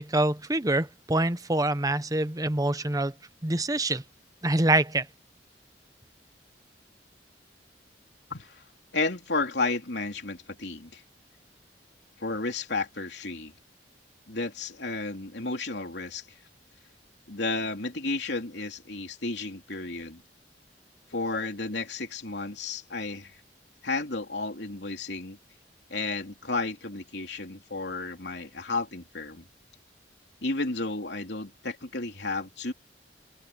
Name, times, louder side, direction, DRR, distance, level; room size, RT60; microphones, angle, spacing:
voice 1, 0.0-3.1 3.4-4.0 4.4-5.1, right 2 dB, 20° right, 1.0 m, -25 dB
voice 2, 8.3-8.6 8.9-11.0 12.2-13.5 14.3-16.3 17.3-20.2 21.1-23.4 23.8-25.4 25.9-29.4 30.4-32.7, left 3 dB, 70° left, 3.6 m, -32 dB
open air
head